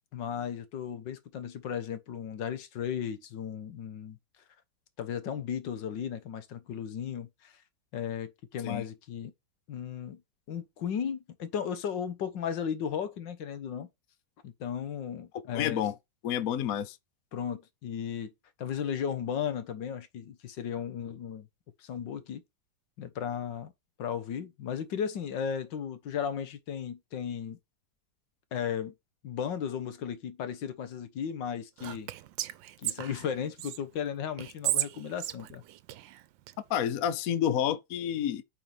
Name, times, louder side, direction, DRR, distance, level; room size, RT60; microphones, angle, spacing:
voice 1, 0.1-4.2 5.0-7.5 7.9-9.3 9.7-10.2 10.5-13.9 14.4-15.8 17.3-18.3 18.6-21.5 21.8-22.4 23.0-23.7 24.0-27.6 28.5-28.9 29.2-32.1 32.8-35.6, left 8 dB, 75° left, 1.7 m, -35 dB
voice 2, 15.5-15.9 16.2-17.0 36.7-38.4, left 10 dB, 60° left, 1.0 m, -29 dB
Whispering, 31.8-33.8 34.4-36.5, right 13 dB, 85° right, 1.4 m, -34 dB
9.2 x 4.6 x 3.4 m
omnidirectional pair, 2.0 m